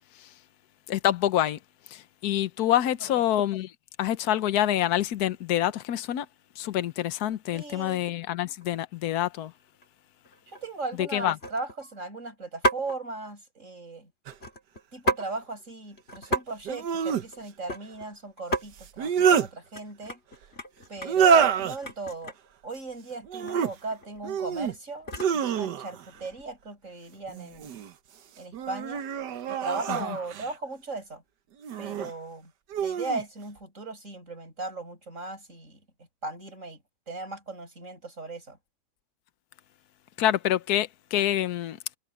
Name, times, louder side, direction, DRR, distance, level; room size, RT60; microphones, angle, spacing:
voice 1, 0.9-1.6 1.9-3.7 4.0-6.3 6.6-9.5 11.0-11.4 29.9-30.2 40.2-41.8, left 12 dB, 70° left, 1.4 m, -26 dB
voice 2, 7.5-8.1 10.5-14.1 14.9-20.2 20.9-22.4 22.6-27.7 28.4-29.1 29.5-31.2 31.8-32.5 32.8-35.8 36.2-36.8 37.1-38.6, right 3 dB, 45° right, 8.6 m, -37 dB
sound 1, 8.4-8.7 9.2-9.5 9.8-9.9 10.2-10.6 11.4-11.9 12.6-13.0 14.3-15.3 15.6-15.7 16.0-16.4 16.7-18.1 18.4-18.6 19.1-19.4 19.7-22.5 23.4-23.6 23.9-25.4 26.1-26.4, right 1 dB, 35° left, 2.9 m, -33 dB
sound 2, 14.3-14.4 16.6-17.3 18.8-19.5 21.0-21.8 23.2-23.7 24.2-24.7 25.1-26.0 27.3-27.9 28.5-30.5 31.6-32.1 32.7-33.2, right 7 dB, 85° right, 1.6 m, -26 dB
omnidirectional pair, 1.8 m